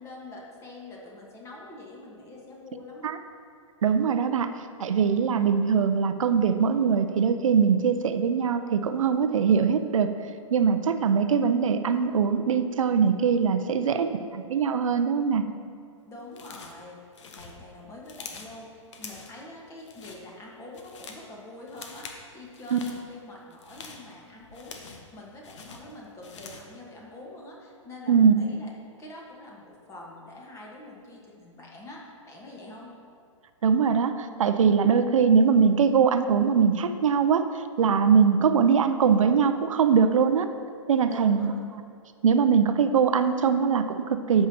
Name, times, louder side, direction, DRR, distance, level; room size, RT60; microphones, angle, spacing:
voice 1, 0.0-3.1 13.8-14.1 16.0-17.0 17.3-28.7 29.0-32.9 41.1-41.5, left 2 dB, 15° left, -3 dB, 1.5 m, -45 dB
voice 2, 3.8-4.5 4.8-10.1 10.5-15.4 22.7-22.8 28.1-28.3 33.6-40.5 40.9-41.8 42.2-44.5, right 6 dB, 75° right, 9 dB, 0.5 m, -22 dB
sound 1, 16.3-16.8 17.1-18.6 18.9-19.4 19.8-20.2 20.6-21.3 21.7-22.2 22.5-23.0 23.5-25.1 25.4-26.7, left 5 dB, 60° left, 1.0 m, -45 dB
13.5 x 5.6 x 2.9 m, 2.3 s
hypercardioid pair, 125°, 17 cm